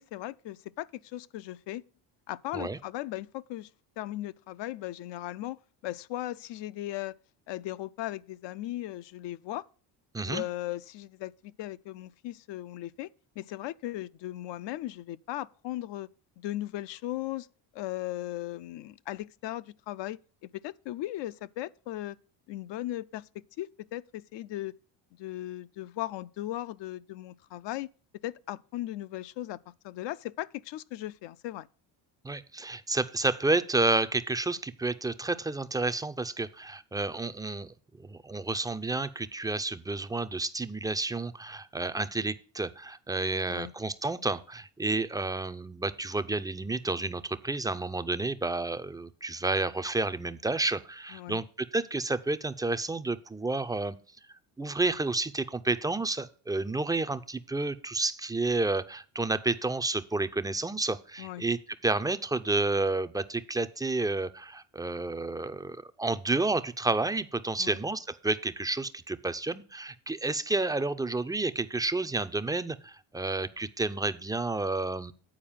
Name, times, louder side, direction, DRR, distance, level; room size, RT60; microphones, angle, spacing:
voice 1, 0.0-1.8 2.3-3.7 4.0-7.1 7.5-9.7 10.2-13.1 13.4-16.1 16.4-17.5 17.7-22.2 22.5-24.8 25.2-27.9 28.2-31.7 43.5-43.7 51.1-51.4 61.2-61.4 67.6-67.8, left 15 dB, 60° left, 0.5 m, -37 dB
voice 2, 32.2-54.0 54.6-61.6 61.8-75.1, right 2 dB, 10° right, 0.4 m, -30 dB
8.8 x 4.6 x 7.3 m
cardioid pair, 95°, 48 cm